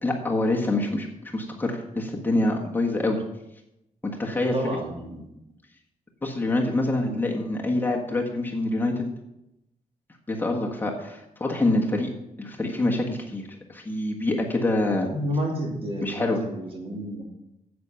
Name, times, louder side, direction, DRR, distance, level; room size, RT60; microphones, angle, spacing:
voice 1, 0.0-3.2 4.0-4.6 6.2-9.1 10.3-12.1 12.4-15.1 16.0-16.4, left 2 dB, 15° left, -1 dB, 1.5 m, -26 dB
voice 2, 4.5-5.3 7.0-7.3 15.1-17.2, equal, 45° right, 0 dB, 2.8 m, -31 dB
10.5 x 8.5 x 5.7 m, 0.87 s
cardioid pair, 125°, 14 cm